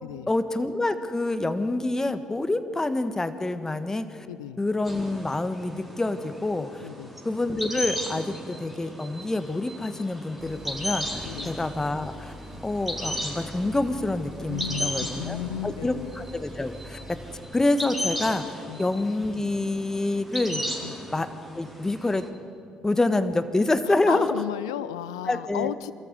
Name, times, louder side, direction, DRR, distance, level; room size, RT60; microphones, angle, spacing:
voice 1, 0.3-4.3 4.6-6.9 7.2-12.3 12.6-15.4 15.6-17.2 17.5-18.4 18.8-20.6 21.1-21.3 21.5-22.2 22.8-24.3 25.3-25.7, left 2 dB, 20° left, 10 dB, 1.4 m, -27 dB
voice 2, 4.3-4.6 6.8-7.1 11.2-11.5 14.5-16.1 18.7-18.8 20.8-20.9 23.8-25.9, left 12 dB, 85° left, 16 dB, 0.5 m, -34 dB
sound 1, 4.9-22.3, equal, 5° right, 4.3 m, -36 dB
sound 2, 10.4-17.4, equal, 30° right, 4.8 m, -44 dB
24.0 x 14.0 x 8.2 m, 2.5 s
hypercardioid pair, 50°, 3 cm